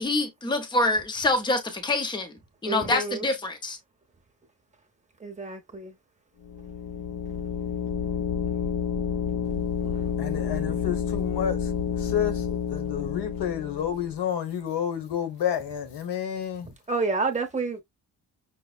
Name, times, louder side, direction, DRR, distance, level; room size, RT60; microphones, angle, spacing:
voice 1, 0.0-2.3 2.6-3.8, left 2 dB, 10° left, 0.6 m, -26 dB
voice 2, 2.6-3.3 5.2-5.9 9.8-10.0 10.5-10.6 16.9-17.8, right 4 dB, 20° right, 0.8 m, -29 dB
sound 1, 6.4-14.1, left 7 dB, 55° left, 0.5 m, -29 dB
voice 3, 10.2-11.7 12.0-16.7, left 9 dB, 90° left, 1.0 m, -30 dB
5.7 x 2.0 x 2.2 m
wide cardioid pair, 175°, 40 cm